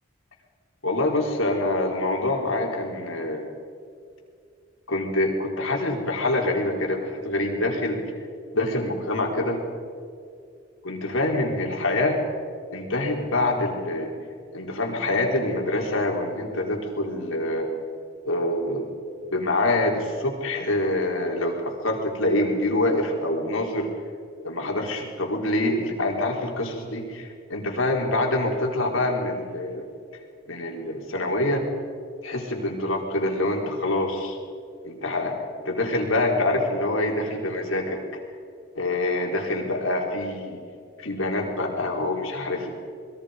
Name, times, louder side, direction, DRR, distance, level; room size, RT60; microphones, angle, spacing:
voice 1, 0.8-3.5 4.9-8.0 8.5-9.6 10.8-12.2 12.7-14.1 14.5-17.7 18.3-18.9 19.3-23.9 24.4-29.9 30.5-31.6 32.2-34.4 34.8-35.3 35.6-38.0 38.7-40.6 41.0-42.8, left 2 dB, 80° left, 0 dB, 4.3 m, -25 dB
28.5 x 22.0 x 5.3 m, 2.3 s
head